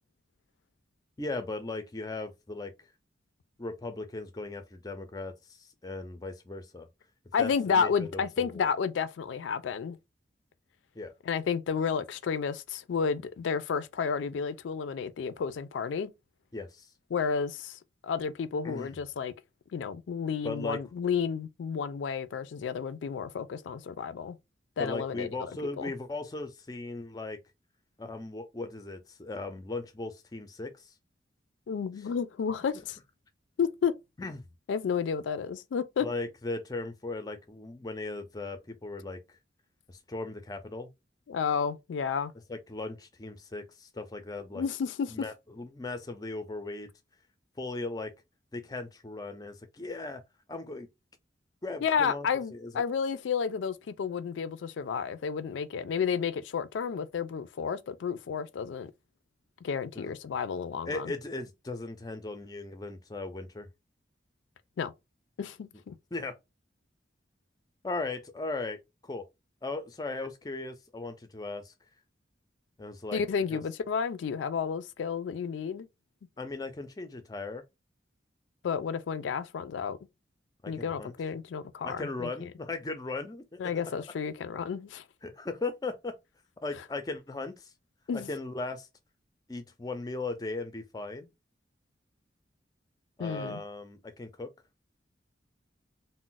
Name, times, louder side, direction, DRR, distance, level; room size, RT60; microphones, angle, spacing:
voice 1, 1.2-2.9 3.6-6.9 7.4-8.7 10.9-11.1 16.5-16.9 18.6-18.9 20.4-20.8 24.8-27.4 28.0-30.9 34.2-34.4 36.0-39.4 39.9-40.9 42.5-44.6 45.1-46.9 47.6-48.1 48.5-50.2 50.5-50.9 51.6-52.8 59.9-60.1 60.9-63.7 66.1-66.4 67.8-69.3 69.6-71.7 72.8-73.2 73.5-73.6 76.4-77.6 80.6-81.1 81.8-83.6 85.2-86.1 86.6-87.7 88.1-88.9 89.5-91.3 93.2-94.5, left 3 dB, 20° left, 0.4 m, -37 dB
voice 2, 7.3-10.0 11.3-16.1 17.1-19.3 19.7-24.4 24.8-25.9 31.7-33.0 33.6-33.9 34.7-36.1 41.3-42.3 44.5-45.1 51.8-58.9 59.6-61.1 64.8-64.9 65.4-65.9 73.1-75.9 78.6-80.0 80.7-82.5 83.6-85.0 88.1-88.3 93.2-93.6, left 6 dB, 90° left, 0.4 m, -31 dB
2.4 x 2.1 x 3.8 m
head